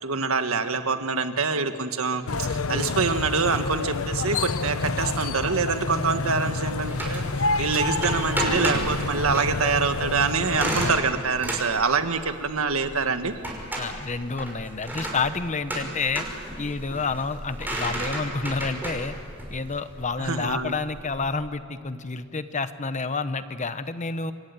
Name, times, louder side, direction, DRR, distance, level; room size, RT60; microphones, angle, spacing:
voice 1, 0.0-13.3 20.2-20.8, right 4 dB, 85° right, 8 dB, 1.6 m, -25 dB
sound 1, 2.3-11.0, left 3 dB, 80° left, 1.0 m, -28 dB
sound 2, 6.9-21.4, right 1 dB, 10° right, 5.6 m, -33 dB
voice 2, 13.8-16.3 16.6-19.2 19.5-24.3, left 4 dB, 35° left, 11 dB, 1.0 m, -29 dB
27.0 x 22.0 x 9.7 m, 2.4 s
head